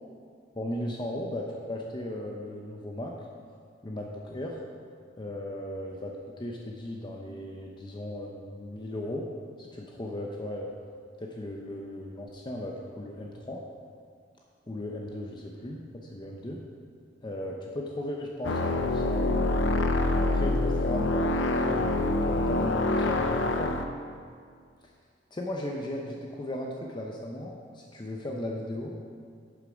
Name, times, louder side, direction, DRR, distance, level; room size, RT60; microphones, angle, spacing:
voice 1, 0.6-3.1 3.8-4.6 5.2-6.1 6.4-9.2 9.6-10.7 11.2-13.6 14.7-16.6 17.2-19.5 20.1-22.0 22.3-23.8 25.3-29.0, left 1 dB, 25° left, 0 dB, 0.7 m, -36 dB
sound 1, 18.4-23.8, left 2 dB, 70° left, 0.7 m, -26 dB
11.0 x 6.8 x 5.1 m, 2.1 s
head